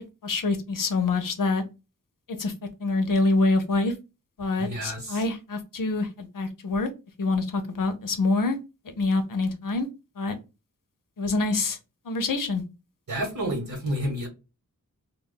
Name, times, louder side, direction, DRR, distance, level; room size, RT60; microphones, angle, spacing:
voice 1, 0.2-1.6 2.3-2.5 2.8-3.9 4.4-6.9 7.2-8.6 9.0-9.9 10.2-10.4 11.2-11.8 12.1-12.6, left 3 dB, 75° left, 0.7 m, -25 dB
voice 2, 4.6-5.2 13.1-14.3, equal, 70° right, 1.1 m, -30 dB
2.2 x 2.2 x 3.7 m
wide cardioid pair, 70°, 32 cm